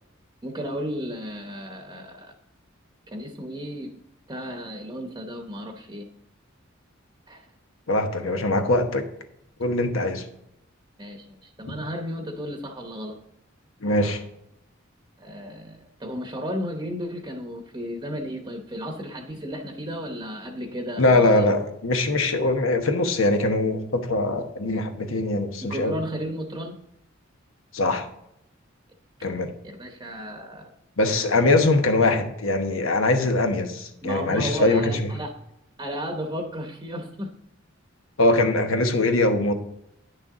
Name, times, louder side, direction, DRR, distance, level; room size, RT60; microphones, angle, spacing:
voice 1, 0.4-2.3 3.1-3.9 4.3-6.0 7.3-7.5 11.0-13.1 15.2-21.5 25.6-26.7 29.6-30.7 34.0-35.3 35.8-37.3, equal, 20° right, 3 dB, 0.9 m, -34 dB
voice 2, 7.9-9.1 9.6-10.2 11.7-11.8 13.8-14.2 21.0-25.9 27.7-28.1 29.2-29.5 31.0-35.1 38.2-39.5, left 2 dB, 90° left, 6 dB, 1.1 m, -22 dB
9.2 x 6.7 x 3.7 m, 0.79 s
head